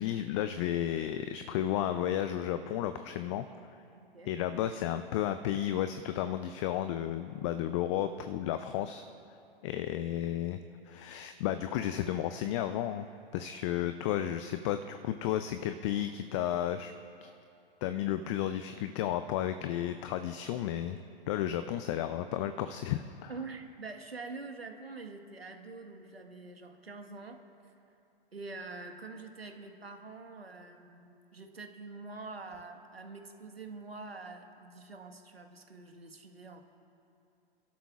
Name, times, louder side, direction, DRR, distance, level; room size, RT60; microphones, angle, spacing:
voice 1, 0.0-3.5 4.3-9.0 9.6-10.6 10.9-13.1 13.3-16.9 17.2-17.3 17.8-21.0 21.3-23.3, left 11 dB, 30° left, 10 dB, 0.5 m, -33 dB
voice 2, 4.0-4.3 23.3-27.7 28.3-36.6, right 3 dB, 85° right, 5 dB, 1.5 m, -45 dB
29.0 x 12.5 x 2.4 m, 2.6 s
figure-of-eight pair, 110°, 29 cm